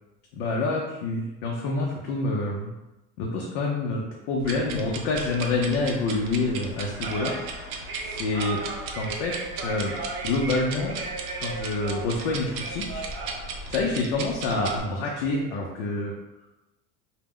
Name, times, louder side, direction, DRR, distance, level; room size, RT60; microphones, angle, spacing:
voice 1, 0.3-2.7 3.2-8.6 8.9-9.3 9.6-9.9 10.2-11.0 11.4-13.0 13.3-16.1, left 3 dB, 80° left, -1 dB, 0.5 m, -27 dB
sound 1, 4.4-13.9, right 3 dB, 50° right, 0.6 m, -37 dB
sound 2, 4.4-14.8, right 3 dB, 90° right, 0.5 m, -37 dB
2.1 x 2.1 x 3.5 m, 1.0 s
cardioid pair, 125°, 30 cm